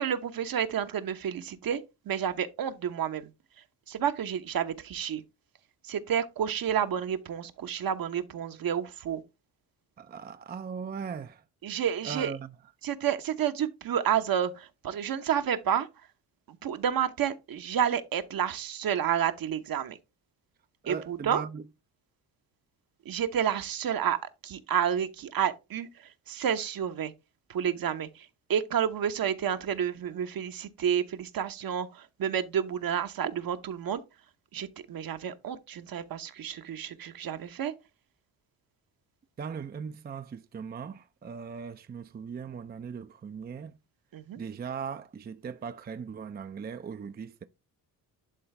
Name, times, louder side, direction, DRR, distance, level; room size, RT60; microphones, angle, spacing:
voice 1, 0.0-1.8 2.0-3.3 3.9-5.2 5.8-9.2 11.6-12.3 12.8-15.9 16.5-20.0 20.9-21.4 23.0-27.1 27.5-34.0 34.5-37.7 44.1-44.4, right 9 dB, 60° right, 1.0 m, -30 dB
voice 2, 10.0-11.4 12.0-12.5 20.8-21.6 39.4-43.8 44.4-47.4, right 6 dB, 25° right, 0.5 m, -39 dB
11.0 x 3.9 x 3.3 m
supercardioid pair, 70°, 40 cm